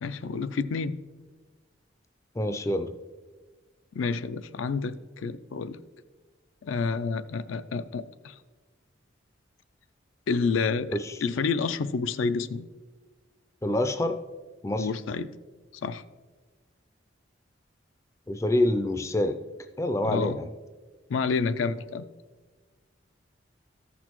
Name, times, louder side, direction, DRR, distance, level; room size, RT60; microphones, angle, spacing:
voice 1, 0.0-1.0 3.9-5.8 6.6-8.4 10.3-12.7 14.8-15.3 15.8-16.0 20.0-20.4 21.1-22.1, left 4 dB, 85° left, 13 dB, 0.4 m, -29 dB
voice 2, 2.4-2.9 10.9-11.1 13.6-14.2 14.6-14.9 18.3-19.4 19.8-20.5, left 1 dB, 15° left, 7 dB, 0.3 m, -26 dB
14.0 x 6.2 x 3.0 m, 1.4 s
head